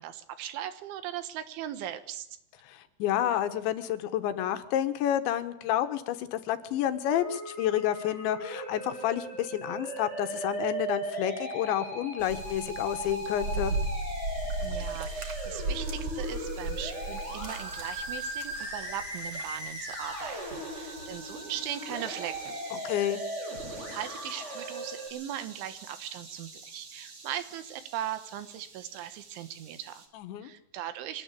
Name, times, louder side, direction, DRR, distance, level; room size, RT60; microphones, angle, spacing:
voice 1, 0.0-2.3 14.6-22.6 23.9-30.0 30.4-31.2, right 11 dB, 80° right, 12 dB, 3.9 m, -39 dB
voice 2, 2.7-13.8 22.7-23.2 30.2-30.5, left 11 dB, 75° left, 10 dB, 3.5 m, -30 dB
Musical instrument, 7.1-25.1, right 1 dB, 15° right, 8.0 m, -38 dB
sound 1, 12.2-30.1, right 2 dB, 35° right, 3.1 m, -39 dB
24.0 x 18.0 x 8.4 m, 0.79 s
omnidirectional pair, 5.4 m